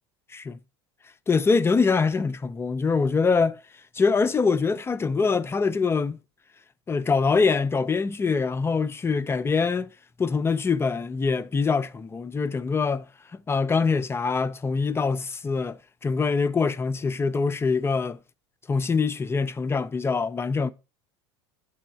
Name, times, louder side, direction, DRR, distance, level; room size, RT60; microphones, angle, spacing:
voice 1, 1.3-3.6 3.9-6.2 6.9-9.9 10.2-13.0 13.5-18.2 18.7-20.7, left 4 dB, 20° left, 0.4 m, -24 dB
7.5 x 3.4 x 4.4 m
supercardioid pair, 95°, 14 cm